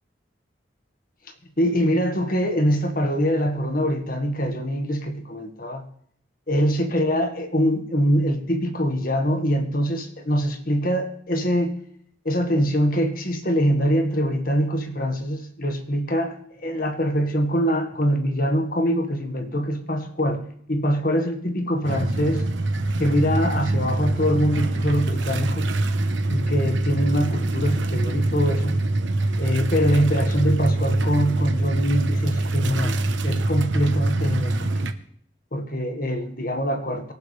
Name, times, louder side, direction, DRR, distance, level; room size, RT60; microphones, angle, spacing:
voice 1, 1.6-5.8 6.5-11.8 12.3-22.5 23.0-25.7 26.3-28.8 29.4-34.9 35.5-37.1, equal, 45° left, 6 dB, 1.7 m, -24 dB
sound 1, 21.8-34.9, right 2 dB, 75° right, 1.1 m, -24 dB
25.5 x 11.5 x 3.4 m, 0.62 s
head